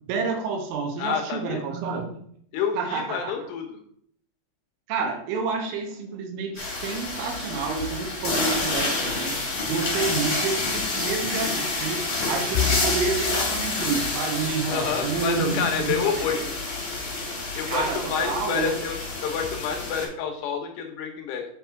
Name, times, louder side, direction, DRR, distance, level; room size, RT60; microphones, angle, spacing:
voice 1, 0.1-2.1 2.8-3.3 4.9-12.0 12.3-16.5 17.7-18.8, right 5 dB, 85° right, 5 dB, 3.5 m, -29 dB
voice 2, 1.0-1.6 2.5-3.8 14.7-16.4 17.6-19.0 19.2-21.5, left 6 dB, 75° left, 3 dB, 2.9 m, -28 dB
sound 1, 6.6-20.1, left 3 dB, 40° left, 3.3 m, -28 dB
Bowed string instrument, 12.5-17.1, left 6 dB, 90° left, 3.2 m, -34 dB
7.6 x 4.8 x 4.5 m, 0.65 s
omnidirectional pair, 5.4 m